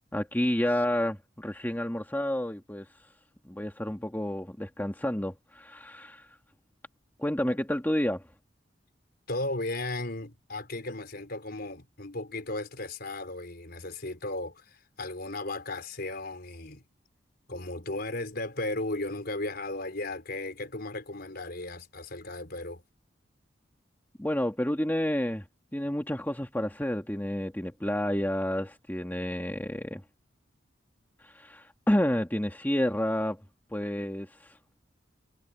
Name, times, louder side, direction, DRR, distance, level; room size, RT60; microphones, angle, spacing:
voice 1, 0.1-2.9 3.4-6.3 7.2-8.2 24.2-25.4 25.7-30.0 31.2-33.4 33.7-34.6, left 1 dB, 10° left, 1.8 m, -30 dB
voice 2, 9.3-14.6 15.0-16.8 17.5-22.8, left 2 dB, 55° left, 4.6 m, -35 dB
head